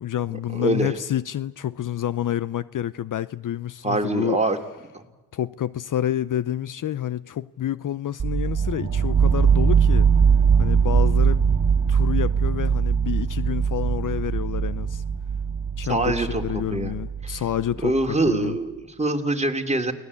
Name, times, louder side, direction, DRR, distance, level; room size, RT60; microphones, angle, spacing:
voice 1, 0.0-4.4 5.3-10.1 10.6-11.5 11.9-15.0 15.8-18.6, left 11 dB, 55° left, 0.7 m, -28 dB
voice 2, 0.5-1.0 3.8-4.6 4.9-5.0 15.9-16.9 17.2-17.4 17.8-19.9, right 2 dB, 15° right, 2.8 m, -24 dB
sound 1, 8.2-18.0, right 6 dB, 50° right, 2.2 m, -21 dB
29.5 x 19.0 x 8.4 m
cardioid pair, 70°, 38 cm